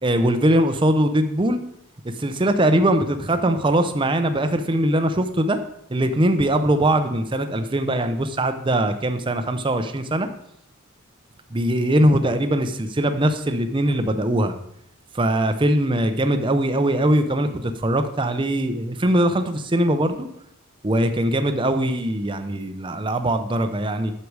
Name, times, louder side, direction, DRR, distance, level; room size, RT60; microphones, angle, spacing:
voice 1, 0.0-1.6 2.2-5.6 5.9-10.3 11.5-14.5 15.1-20.3 20.8-24.1, right 1 dB, 25° right, 8 dB, 0.6 m, -21 dB
8.1 x 6.7 x 4.7 m, 0.75 s
head